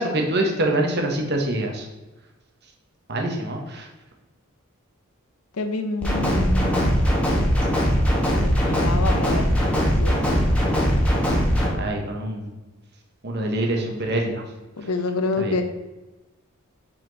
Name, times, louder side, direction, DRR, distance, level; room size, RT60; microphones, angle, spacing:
voice 1, 0.0-1.9 3.1-3.9 11.7-12.5 13.2-14.4 15.4-15.5, right 1 dB, 50° right, 2 dB, 1.0 m, -25 dB
voice 2, 5.5-7.0 8.4-9.7 10.0-10.1 14.8-15.6, left 3 dB, 85° left, 6 dB, 0.8 m, -27 dB
sound 1, 6.0-11.7, equal, 5° left, 1.3 m, -20 dB
7.9 x 4.3 x 3.9 m, 1.1 s
head